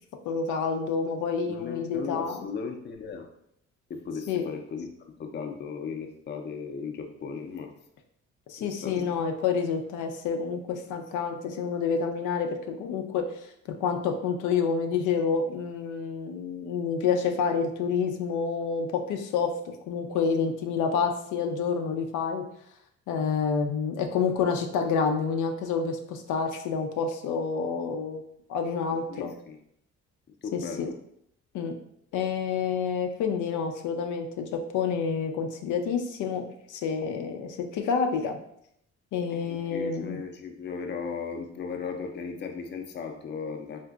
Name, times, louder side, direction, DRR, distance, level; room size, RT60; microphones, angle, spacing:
voice 1, 0.3-2.5 4.3-4.5 8.5-13.5 13.8-22.4 23.1-28.2 28.5-29.3 30.5-30.9 31.5-31.7 32.1-38.4 39.1-40.2, left 6 dB, 85° left, 4 dB, 0.5 m, -28 dB
voice 2, 1.5-3.3 3.9-4.9 5.2-7.7 8.8-9.1 29.1-29.6 30.4-30.9 39.3-43.8, left 5 dB, 35° left, 4 dB, 0.5 m, -36 dB
3.7 x 2.5 x 2.3 m, 0.72 s
cardioid pair, 90°, 30 cm